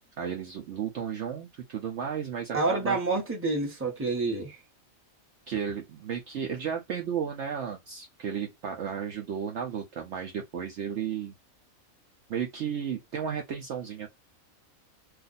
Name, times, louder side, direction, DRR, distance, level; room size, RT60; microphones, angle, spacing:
voice 1, 0.2-3.0 5.5-11.3 12.3-14.1, right 8 dB, 65° right, 0.8 m, -33 dB
voice 2, 2.5-4.6, right 3 dB, 10° right, 0.9 m, -28 dB
2.6 x 2.4 x 3.9 m
omnidirectional pair, 1.5 m